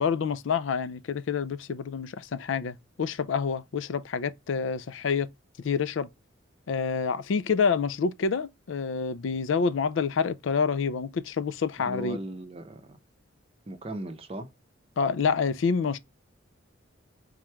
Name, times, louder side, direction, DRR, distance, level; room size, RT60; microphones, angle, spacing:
voice 1, 0.0-5.3 5.6-6.1 6.7-12.2 15.0-16.0, left 5 dB, 70° left, 0.4 m, -27 dB
voice 2, 11.8-13.0 13.7-14.5, right 1 dB, 30° right, 0.7 m, -38 dB
3.7 x 3.1 x 3.3 m
head